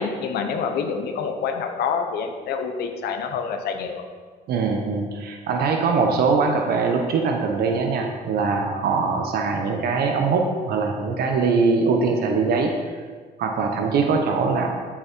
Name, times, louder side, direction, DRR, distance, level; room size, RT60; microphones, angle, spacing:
voice 1, 0.0-4.0, left 6 dB, 70° left, 4 dB, 1.0 m, -27 dB
voice 2, 4.5-12.7 13.4-14.7, right 4 dB, 65° right, 3 dB, 1.2 m, -22 dB
12.0 x 6.3 x 4.6 m, 1.5 s
cardioid pair, 110°, 17 cm